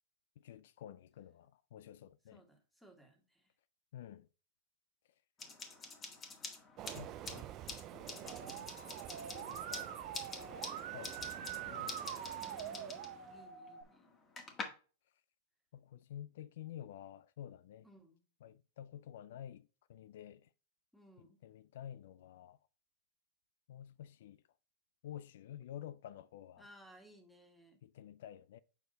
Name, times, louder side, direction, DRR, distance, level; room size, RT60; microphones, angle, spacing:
voice 1, 0.4-2.4 3.9-4.3 6.9-7.5 7.9-8.7 9.2-9.9 10.9-12.0 15.7-17.9 18.4-20.5 21.2-22.6 23.7-24.4 25.0-26.7 27.8-28.6, left 10 dB, 70° left, 0.3 m, -51 dB
voice 2, 2.3-3.6 12.4-14.2 17.8-18.2 20.9-21.4 26.6-27.8, equal, ahead, 1.9 m, -61 dB
sound 1, 5.4-14.6, left 4 dB, 25° left, 1.7 m, -48 dB
Train, 6.8-13.5, right 14 dB, 40° right, 0.4 m, -49 dB
Musical instrument, 8.2-13.8, right 8 dB, 75° right, 1.0 m, -45 dB
6.8 x 4.5 x 3.9 m
hypercardioid pair, 120°, 0 cm